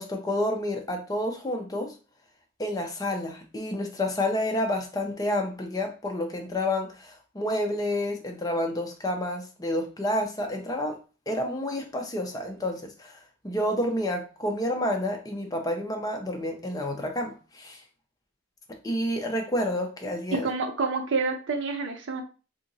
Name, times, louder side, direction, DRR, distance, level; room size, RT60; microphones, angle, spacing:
voice 1, 0.0-1.9 2.6-11.0 11.3-17.8 18.8-20.5, left 1 dB, 20° left, 0.6 m, -29 dB
voice 2, 20.3-22.2, right 4 dB, 75° right, 0.7 m, -28 dB
2.9 x 2.5 x 3.9 m
head